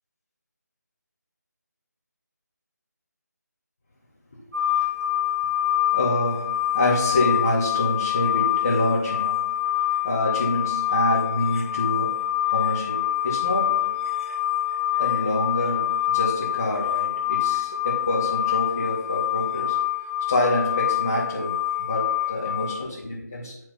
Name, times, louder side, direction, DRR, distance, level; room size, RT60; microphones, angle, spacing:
sound 1, 4.5-22.8, left 12 dB, 55° right, 2.1 m, -25 dB
voice 1, 5.9-9.5 10.0-14.0 15.0-19.8 20.3-23.5, left 1 dB, 10° left, -7 dB, 0.5 m, -26 dB
11.5 x 4.4 x 2.9 m, 0.82 s
figure-of-eight pair, 175°, 10 cm